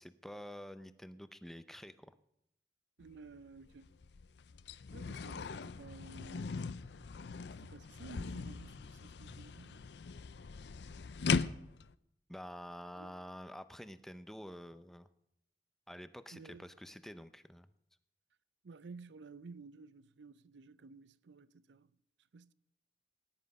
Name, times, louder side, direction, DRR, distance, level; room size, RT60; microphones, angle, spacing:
voice 1, 0.0-2.1 9.3-9.4 12.3-15.1 15.9-17.7, equal, ahead, 0.5 m, -48 dB
sound 1, 3.0-3.2 3.6-11.9, left 5 dB, 75° left, 0.5 m, -39 dB
voice 2, 3.0-3.9 4.9-6.5 7.6-9.9 13.0-13.1 16.3-16.7 18.6-21.9 22.3-22.5, right 3 dB, 90° right, 0.5 m, -53 dB
18.5 x 10.0 x 5.3 m
head